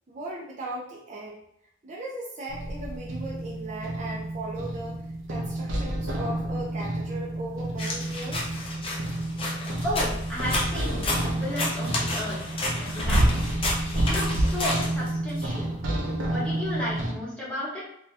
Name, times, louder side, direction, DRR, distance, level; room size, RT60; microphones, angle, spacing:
voice 1, 0.1-1.4 1.8-5.0 5.3-8.6, right 2 dB, 35° right, -4 dB, 0.4 m, -37 dB
sound 1, 2.5-17.1, right 1 dB, 80° right, 0.6 m, -29 dB
sound 2, 7.8-15.4, left 2 dB, 30° left, 0.5 m, -32 dB
voice 2, 9.8-13.4 13.9-15.7 16.3-17.8, left 1 dB, 5° left, -8 dB, 1.0 m, -33 dB
2.7 x 2.2 x 3.2 m, 0.76 s
head